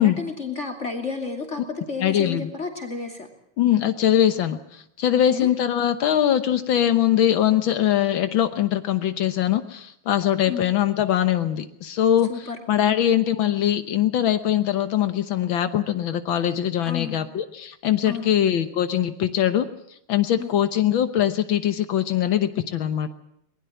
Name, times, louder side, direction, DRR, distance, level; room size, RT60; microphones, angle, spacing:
voice 1, 0.0-3.3 5.3-5.5 10.5-10.6 12.3-12.6 16.8-17.3 18.1-18.4 20.4-20.5, left 4 dB, 35° left, 4 dB, 3.0 m, -32 dB
voice 2, 2.0-2.5 3.6-19.7 20.1-23.1, left 11 dB, 75° left, 10 dB, 1.8 m, -22 dB
22.5 x 20.5 x 7.8 m, 0.74 s
omnidirectional pair, 2.2 m